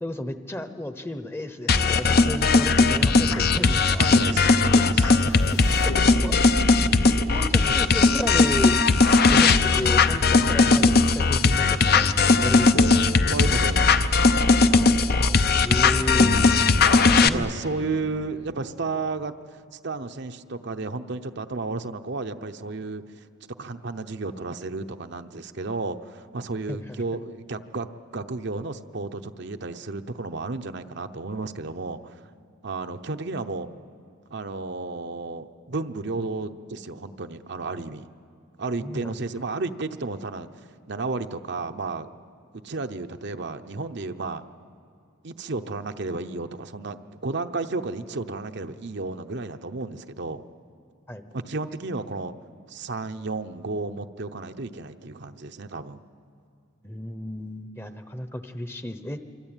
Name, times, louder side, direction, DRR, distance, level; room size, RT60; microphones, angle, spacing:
voice 1, 0.0-4.1 5.5-6.7 7.3-8.8 9.2-12.8 14.7-16.3 17.0-17.9 26.7-27.0 38.8-39.2 51.1-51.2 56.8-59.2, left 1 dB, 10° left, 9 dB, 0.9 m, -33 dB
sound 1, 1.7-17.3, left 4 dB, 50° left, 0.7 m, -18 dB
sound 2, 3.1-12.2 12.7-19.2, left 3 dB, 90° left, 1.0 m, -37 dB
voice 2, 4.0-5.3 7.7-7.9 10.4-10.6 13.3-14.1 17.2-23.0 23.6-32.2 32.6-33.7 34.3-38.1 38.6-40.5 40.9-42.1 42.5-44.4 45.2-50.4 51.3-52.4 52.7-56.0, right 3 dB, 55° right, 7 dB, 0.8 m, -32 dB
26.0 x 24.5 x 9.0 m, 2.4 s
head